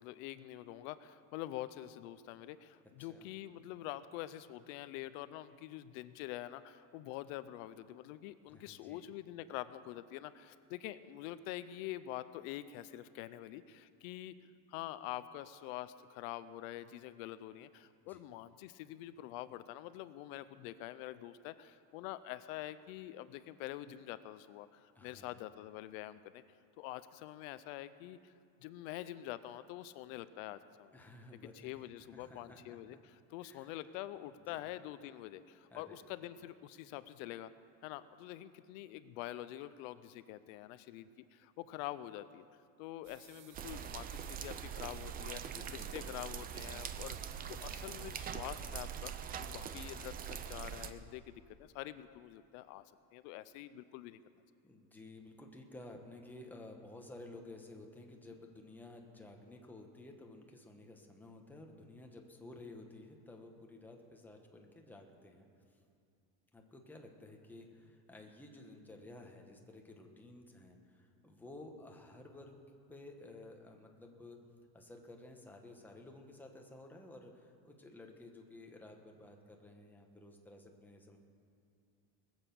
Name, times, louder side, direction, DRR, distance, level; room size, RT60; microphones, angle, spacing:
voice 1, 0.0-26.4 26.8-28.3 28.6-30.9 31.5-37.5 37.8-42.5 42.8-49.1 49.4-54.2, left 14 dB, 80° left, 14 dB, 0.7 m, -46 dB
voice 2, 8.5-9.1 18.0-18.2 24.9-25.4 30.9-32.8 33.4-33.7 34.5-34.6 35.7-36.0 45.5-46.1 54.6-65.8 66.5-72.6 72.9-74.4 74.7-81.2, left 2 dB, 5° left, 2 dB, 1.2 m, -54 dB
sound 1, 43.0-48.7, right 8 dB, 75° right, 1.7 m, -60 dB
sound 2, 43.5-50.9, right 8 dB, 25° right, 0.5 m, -43 dB
20.5 x 8.1 x 7.0 m, 2.4 s
cardioid pair, 160°, 40 cm